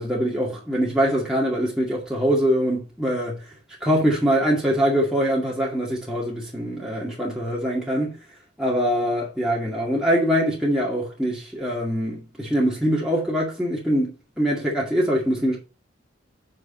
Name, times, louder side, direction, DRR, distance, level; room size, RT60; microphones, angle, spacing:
voice 1, 0.0-3.4 3.8-8.2 8.6-15.6, equal, 5° right, 2.1 m, -23 dB
8.4 x 6.1 x 4.3 m
head